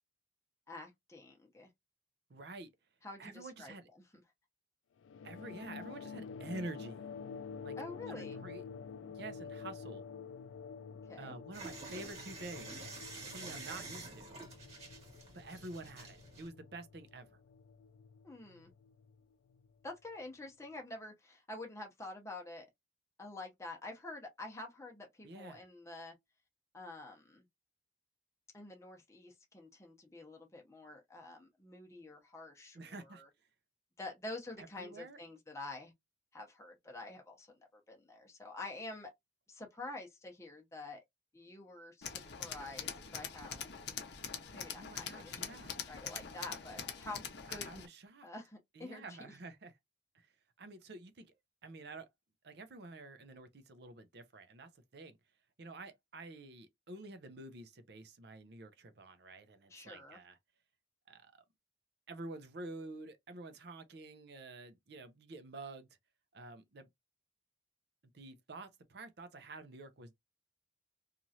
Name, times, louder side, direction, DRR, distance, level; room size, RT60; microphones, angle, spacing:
voice 1, 0.7-1.7 3.0-3.7 7.8-8.4 11.1-11.4 12.0-12.1 18.2-18.7 19.8-22.7 23.2-26.1 26.7-27.4 28.5-32.8 33.1-33.3 34.0-35.9 36.3-39.1 39.5-41.0 41.3-43.7 44.5-47.8 48.2-49.3 59.7-60.2, left 2 dB, 15° left, 0.7 m, -48 dB
voice 2, 2.3-2.7 3.2-3.9 5.2-7.1 7.6-7.8 8.1-8.6 9.1-10.0 11.2-12.9 13.2-14.4 15.3-17.4 25.2-25.7 32.7-33.2 34.6-35.2 44.8-45.7 47.5-48.3 48.7-49.8 50.1-50.3 50.6-51.4 51.6-52.1 52.4-55.2 55.6-60.4 61.1-61.4 62.1-65.9 66.3-66.9 68.1-70.1, right 2 dB, 60° right, 0.6 m, -49 dB
sound 1, 5.0-19.9, left 6 dB, 90° left, 0.3 m, -49 dB
sound 2, 11.5-16.5, right 3 dB, 35° right, 1.4 m, -48 dB
Tools, 42.0-47.9, left 7 dB, 60° left, 0.7 m, -44 dB
3.0 x 2.4 x 2.7 m
head